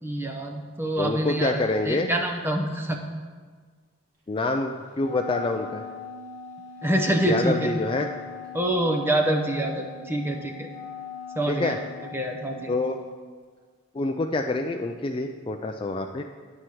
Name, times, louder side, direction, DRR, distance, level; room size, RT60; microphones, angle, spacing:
voice 1, 0.0-3.0 6.8-7.7 8.5-10.7 11.4-11.8 12.1-12.8, right 1 dB, 10° right, 2 dB, 0.7 m, -26 dB
voice 2, 1.0-2.1 4.3-5.8 7.2-8.1 11.5-11.8 12.7-13.0 13.9-16.2, left 2 dB, 25° left, 4 dB, 0.3 m, -26 dB
Wind instrument woodwind instrument, 5.0-13.1, left 6 dB, 40° right, 2.1 m, -39 dB
9.7 x 4.4 x 7.7 m, 1.5 s
head